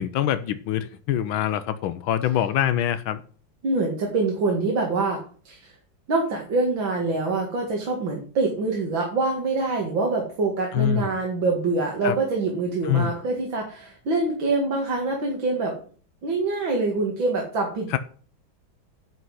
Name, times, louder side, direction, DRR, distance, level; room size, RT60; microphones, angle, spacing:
voice 1, 0.0-3.2 10.7-11.1 12.0-12.2 12.8-13.2 17.9-18.0, left 10 dB, 80° left, 1.5 m, -24 dB
voice 2, 3.6-5.7 6.1-15.8 16.2-18.0, right 3 dB, 75° right, 2.8 m, -25 dB
9.9 x 5.6 x 7.7 m
omnidirectional pair, 2.2 m